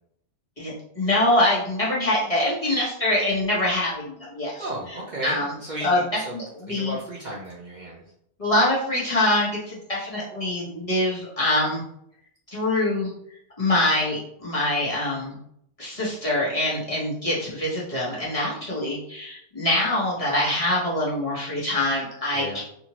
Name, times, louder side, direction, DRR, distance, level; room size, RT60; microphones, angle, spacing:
voice 1, 0.6-4.6 5.2-5.5 5.8-6.0 6.3-7.0 8.4-11.8 12.5-13.1 13.6-15.3 15.8-22.6, left 1 dB, 30° left, -7 dB, 1.1 m, -24 dB
voice 2, 4.6-6.3 6.7-8.0 22.3-22.6, right 1 dB, 50° right, -5 dB, 0.6 m, -34 dB
2.8 x 2.5 x 2.9 m, 0.70 s
omnidirectional pair, 1.2 m